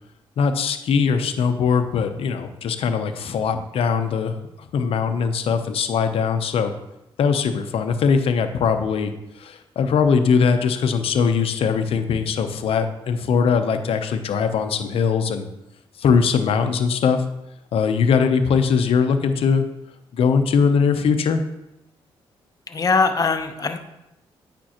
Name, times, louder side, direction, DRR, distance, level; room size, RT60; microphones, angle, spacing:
voice 1, 0.4-4.4 4.7-6.7 7.2-15.5 16.0-17.2 17.7-19.7 20.1-21.4, left 6 dB, 75° left, 8 dB, 0.7 m, -21 dB
voice 2, 22.7-23.8, left 4 dB, 40° left, 7 dB, 0.8 m, -21 dB
8.8 x 5.2 x 2.9 m, 0.89 s
cardioid pair, 75°, 10 cm